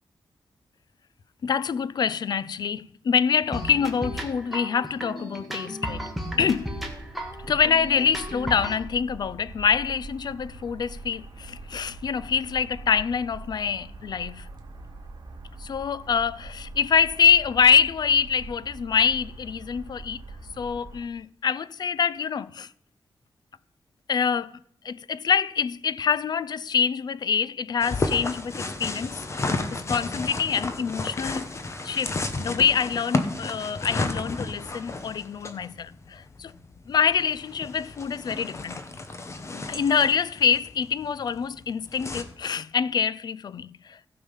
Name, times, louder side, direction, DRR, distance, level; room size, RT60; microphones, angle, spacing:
voice 1, 1.4-6.0 6.4-6.8 7.4-14.5 15.6-20.2 20.6-22.7 24.1-24.5 24.8-31.5 31.8-36.5 36.9-38.8 39.7-44.1, left 7 dB, 55° left, 0.4 m, -25 dB
sound 1, 3.5-8.8, equal, ahead, 1.5 m, -34 dB
sound 2, 6.2-21.1, right 2 dB, 60° right, 1.8 m, -43 dB
sound 3, 27.8-42.2, left 3 dB, 35° left, 1.0 m, -32 dB
15.0 x 5.7 x 5.5 m
wide cardioid pair, 145°, 8 cm